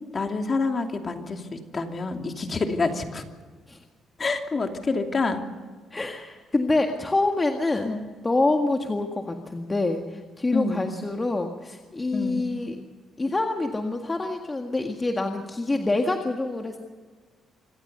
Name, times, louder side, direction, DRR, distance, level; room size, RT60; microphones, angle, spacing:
voice 1, 0.1-3.2 4.2-5.4 7.8-8.0 10.5-10.9 12.1-12.5, left 3 dB, 35° left, 4 dB, 2.8 m, -27 dB
voice 2, 5.9-7.9 8.2-12.8 13.2-16.8, left 2 dB, 20° left, 3 dB, 1.8 m, -26 dB
26.0 x 15.0 x 6.9 m, 1.5 s
cardioid pair, 90°, 0 cm